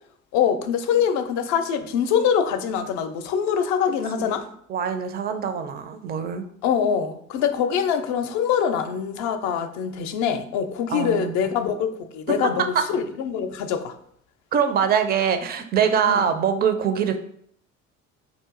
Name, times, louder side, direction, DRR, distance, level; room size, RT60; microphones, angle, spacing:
voice 1, 0.3-4.4 6.6-13.9 16.0-16.2, left 7 dB, 45° left, 9 dB, 0.6 m, -24 dB
voice 2, 4.7-6.4 10.9-11.5 12.7-12.8 14.5-17.2, right 7 dB, 25° right, 8 dB, 0.5 m, -23 dB
5.4 x 2.5 x 3.7 m, 0.65 s
figure-of-eight pair, 55°, 39 cm